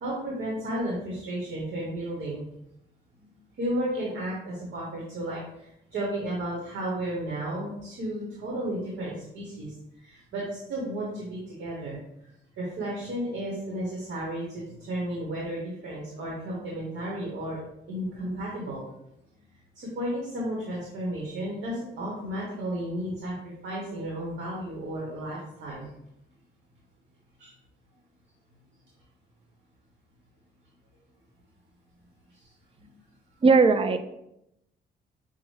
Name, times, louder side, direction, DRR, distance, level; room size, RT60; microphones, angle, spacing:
voice 1, 0.0-2.4 3.2-3.3 3.6-12.0 12.6-17.6 17.9-18.8 19.8-25.9 27.4-27.5 32.3-32.4 32.8-32.9, right 1 dB, 65° right, -4 dB, 1.2 m, -33 dB
voice 2, 33.4-34.0, right 4 dB, 30° right, 9 dB, 0.4 m, -18 dB
5.8 x 2.2 x 3.2 m, 0.81 s
cardioid pair, 90°, 20 cm